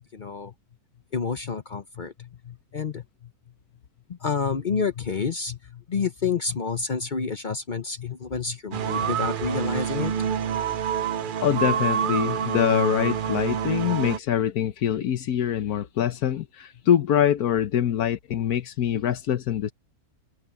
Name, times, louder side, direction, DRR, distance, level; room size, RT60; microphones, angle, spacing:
voice 1, 0.1-0.5 1.1-3.3 4.1-10.3, left 5 dB, 40° left, 0.8 m, -29 dB
sound 1, 8.7-14.2, right 8 dB, 75° right, 0.4 m, -27 dB
voice 2, 11.4-19.7, left 10 dB, 85° left, 1.4 m, -24 dB
omnidirectional pair, 1.6 m